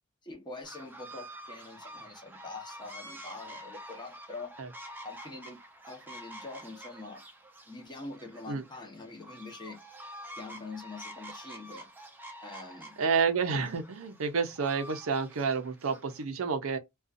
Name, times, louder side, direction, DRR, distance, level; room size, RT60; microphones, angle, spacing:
voice 1, 0.2-4.6 5.0-5.6 5.8-7.2 7.7-9.9 10.3-11.9 12.4-13.0, left 3 dB, 20° left, 0.9 m, -44 dB
sound 1, 0.6-16.2, right 1 dB, 10° right, 0.5 m, -48 dB
voice 2, 13.0-16.8, right 5 dB, 70° right, 0.6 m, -29 dB
2.5 x 2.3 x 2.4 m
head